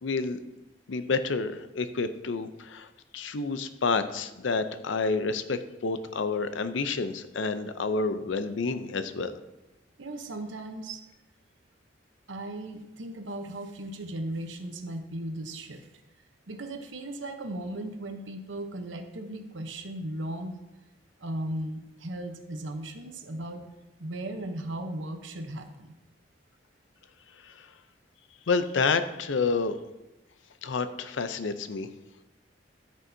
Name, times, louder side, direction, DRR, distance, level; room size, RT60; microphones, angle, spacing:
voice 1, 0.0-0.4 0.9-2.9 3.1-9.3 27.4-27.7 28.5-29.8 30.6-31.9, left 4 dB, 85° left, 11 dB, 0.6 m, -29 dB
voice 2, 10.0-11.0 12.3-15.9 16.5-20.6 21.2-23.7 24.0-26.0, right 1 dB, 85° right, 6 dB, 0.9 m, -37 dB
13.5 x 6.4 x 2.7 m, 0.98 s
head